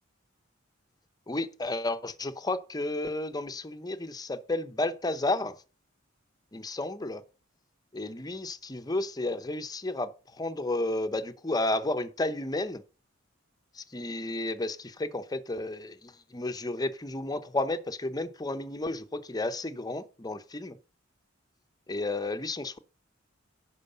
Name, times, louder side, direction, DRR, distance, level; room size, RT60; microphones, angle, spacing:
voice 1, 1.3-5.6 6.5-7.2 7.9-12.8 13.7-20.8 21.9-22.8, left 2 dB, 20° left, 0.7 m, -32 dB
11.0 x 4.6 x 6.8 m
head